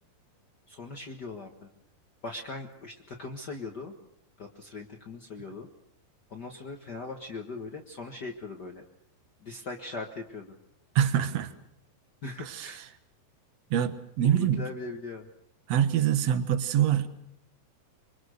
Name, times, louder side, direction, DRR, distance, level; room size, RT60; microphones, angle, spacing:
voice 1, 0.7-1.7 2.2-3.9 4.4-5.7 6.3-8.8 9.4-10.5 12.2-12.8 14.2-15.3, left 3 dB, 90° left, 3 dB, 0.9 m, -40 dB
voice 2, 11.0-11.5 12.4-12.7 13.7-14.6 15.7-17.1, right 10 dB, 60° right, 11 dB, 1.9 m, -25 dB
25.5 x 25.0 x 6.5 m, 0.69 s
omnidirectional pair, 4.6 m